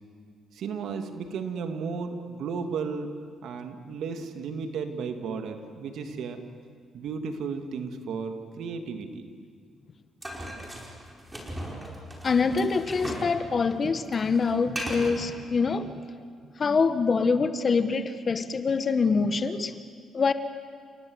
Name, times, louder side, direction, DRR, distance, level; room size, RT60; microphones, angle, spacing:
voice 1, 0.5-3.1 3.4-6.4 6.9-9.3, right 5 dB, 75° right, 6 dB, 2.2 m, -34 dB
sound 1, 10.2-13.4 13.6-15.2, equal, 15° right, 5.1 m, -37 dB
voice 2, 12.2-15.9 16.6-19.9 20.1-20.3, left 4 dB, 40° left, 11 dB, 1.2 m, -25 dB
30.0 x 18.5 x 8.0 m, 2.1 s
cardioid pair, 90°, 0 cm